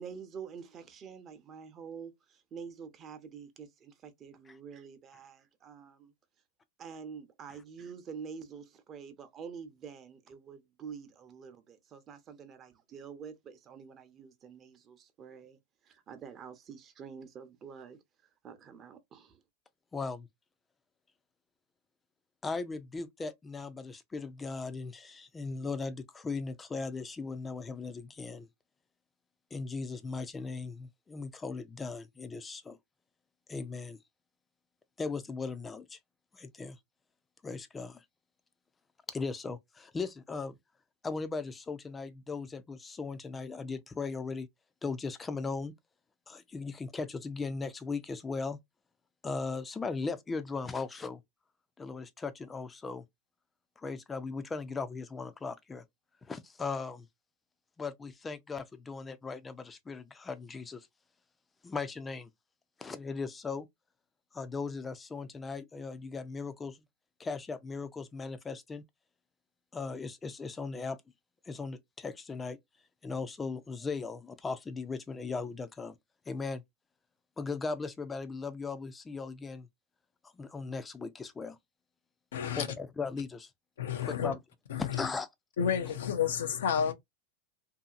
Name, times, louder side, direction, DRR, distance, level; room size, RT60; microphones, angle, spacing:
voice 1, 0.0-2.1 2.5-6.1 6.8-15.6 15.9-18.0 18.4-19.4, right 6 dB, 35° right, 0.8 m, -47 dB
voice 2, 19.9-20.3 22.4-28.5 29.5-32.8 33.5-34.0 35.0-36.0 36.3-36.8 37.4-38.0 39.1-40.6 41.0-44.5 44.8-45.7 46.3-48.6 49.2-51.2 51.8-53.0 53.8-55.8 56.2-57.1 57.8-60.9 61.6-62.3 62.8-63.7 64.3-66.8 67.2-68.8 69.7-71.0 71.5-72.6 73.0-76.0 76.3-76.6 77.4-79.7 80.3-81.6 82.5-83.5 84.0-84.4 84.8-85.3, left 4 dB, 15° left, 0.5 m, -38 dB
voice 3, 82.3-82.7 83.8-84.3 84.7-85.1 85.6-86.9, left 8 dB, 85° left, 0.7 m, -30 dB
2.8 x 2.7 x 2.4 m
hypercardioid pair, 115°, 0 cm